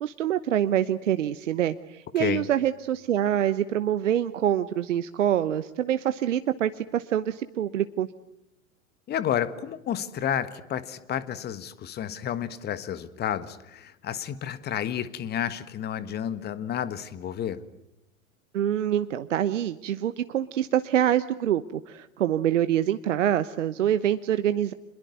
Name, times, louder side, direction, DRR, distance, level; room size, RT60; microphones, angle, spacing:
voice 1, 0.0-8.1 18.5-24.7, right 10 dB, 60° right, 12 dB, 1.1 m, -25 dB
voice 2, 9.1-17.6, left 10 dB, 25° left, 15 dB, 1.5 m, -31 dB
27.5 x 21.5 x 9.4 m, 0.88 s
figure-of-eight pair, 95°, 41 cm